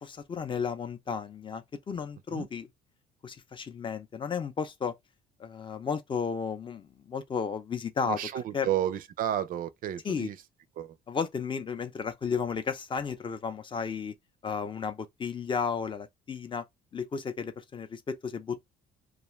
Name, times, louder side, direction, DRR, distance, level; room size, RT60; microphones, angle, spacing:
voice 1, 0.0-2.7 3.2-5.0 5.4-8.2 8.5-8.7 10.0-10.3 11.1-14.1 14.4-16.7 16.9-18.6, left 6 dB, 30° left, 0.5 m, -33 dB
voice 2, 8.0-10.4 10.8-11.0, right 11 dB, 55° right, 0.4 m, -32 dB
2.4 x 2.3 x 3.0 m
cardioid pair, 110°, 17 cm